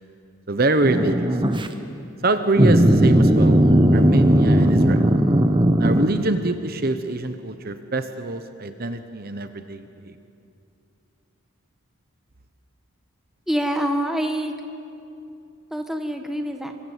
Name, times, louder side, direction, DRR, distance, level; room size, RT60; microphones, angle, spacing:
voice 1, 0.5-1.4 2.2-3.6 3.9-5.1 5.8-10.2, right 2 dB, 45° right, 9 dB, 1.0 m, -25 dB
sound 1, 0.8-1.7 2.6-6.1, right 1 dB, 20° right, 1.2 m, -17 dB
voice 2, 13.5-14.5 15.7-16.7, equal, ahead, 4 dB, 1.6 m, -25 dB
28.0 x 24.5 x 8.3 m, 2.7 s
head